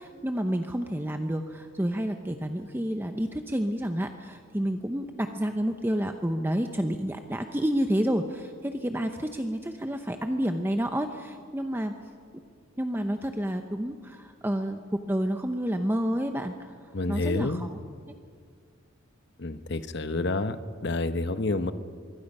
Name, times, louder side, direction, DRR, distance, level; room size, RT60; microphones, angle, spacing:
voice 1, 0.0-11.9 12.8-16.7 17.1-17.8, equal, 10° right, 6 dB, 0.7 m, -29 dB
voice 2, 16.9-17.7 19.4-20.6 20.8-21.7, left 2 dB, 55° left, 11 dB, 0.9 m, -28 dB
25.0 x 23.0 x 5.5 m, 2.1 s
head